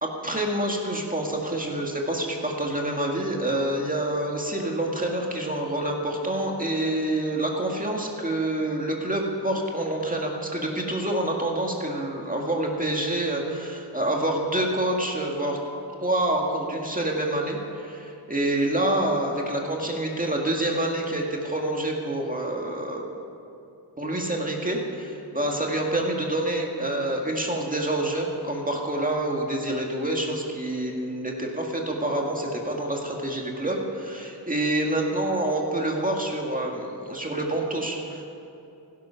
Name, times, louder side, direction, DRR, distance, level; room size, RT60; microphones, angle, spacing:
voice 1, 0.0-15.6 16.0-23.1 24.0-38.2, right 1 dB, 20° right, 0 dB, 2.0 m, -27 dB
16.0 x 12.5 x 5.8 m, 2.8 s
wide cardioid pair, 85°, 41 cm